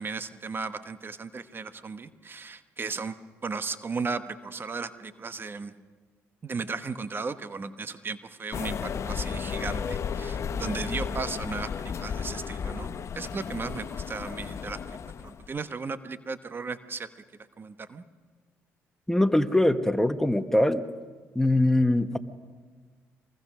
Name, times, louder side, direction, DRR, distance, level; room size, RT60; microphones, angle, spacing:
voice 1, 0.0-3.1 3.4-5.7 6.4-14.8 15.2-17.1 17.6-18.0, right 4 dB, 35° right, 11 dB, 1.2 m, -35 dB
sound 1, 8.5-15.5, left 6 dB, 50° left, 0.8 m, -33 dB
voice 2, 19.1-20.8 21.3-22.2, left 1 dB, 5° left, 10 dB, 1.1 m, -22 dB
25.0 x 20.5 x 6.3 m, 1.5 s
hypercardioid pair, 55°, 6 cm